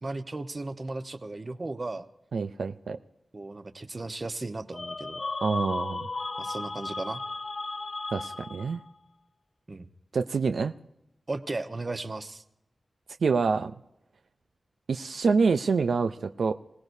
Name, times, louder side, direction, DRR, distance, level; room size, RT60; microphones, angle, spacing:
voice 1, 0.0-2.1 3.3-5.2 6.4-7.2 9.7-9.9 11.3-12.4, right 2 dB, 40° right, 9 dB, 1.1 m, -35 dB
voice 2, 2.3-3.0 5.4-6.1 8.1-8.8 10.1-10.7 13.2-13.7 14.9-16.5, right 4 dB, 90° right, 8 dB, 0.5 m, -26 dB
sound 1, 4.7-8.9, left 3 dB, 55° left, 0.6 m, -35 dB
26.0 x 18.0 x 2.7 m, 0.84 s
wide cardioid pair, 75°, 0 cm